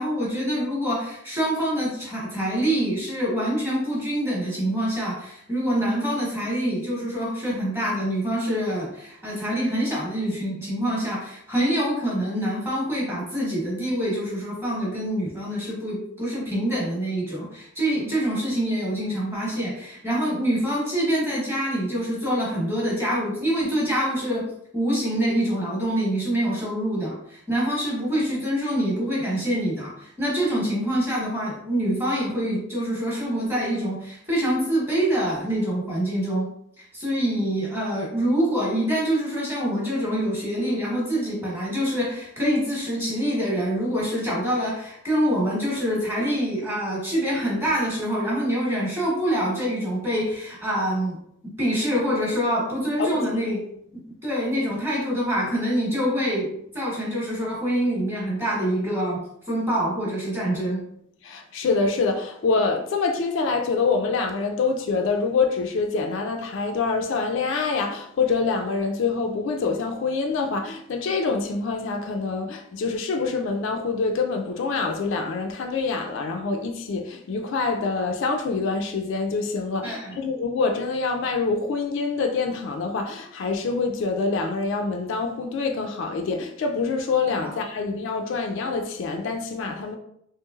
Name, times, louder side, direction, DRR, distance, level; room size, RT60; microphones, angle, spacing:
voice 1, 0.0-36.5 36.8-51.2 51.4-53.6 54.2-60.8 79.8-80.2 87.4-87.5, equal, 10° right, 1.0 m, -25 dB
voice 2, 61.2-90.0, left 4 dB, 60° left, 0.3 m, -26 dB
3.0 x 3.0 x 2.3 m
head